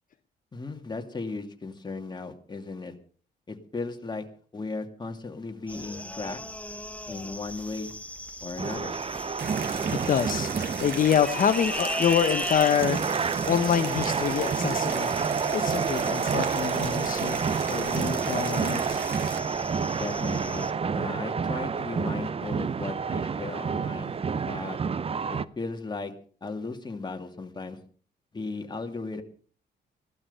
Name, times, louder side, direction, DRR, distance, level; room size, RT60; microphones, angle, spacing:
voice 1, 0.5-2.9 3.5-4.2 4.5-6.4 7.1-7.9 8.4-9.0 19.9-24.8 25.3-26.1 26.4-27.8 28.3-29.2, left 3 dB, 25° left, 4 dB, 2.5 m, -36 dB
sound 1, 5.7-20.7, left 1 dB, 10° left, 1.4 m, -38 dB
sound 2, 8.6-25.5, right 6 dB, 35° right, 0.7 m, -29 dB
sound 3, 9.4-19.4, right 7 dB, 75° right, 2.5 m, -37 dB
voice 2, 10.1-15.2 15.5-17.4 17.7-19.0, left 8 dB, 50° left, 8 dB, 1.0 m, -26 dB
16.0 x 12.0 x 5.6 m, 0.43 s
cardioid pair, 100°, 17 cm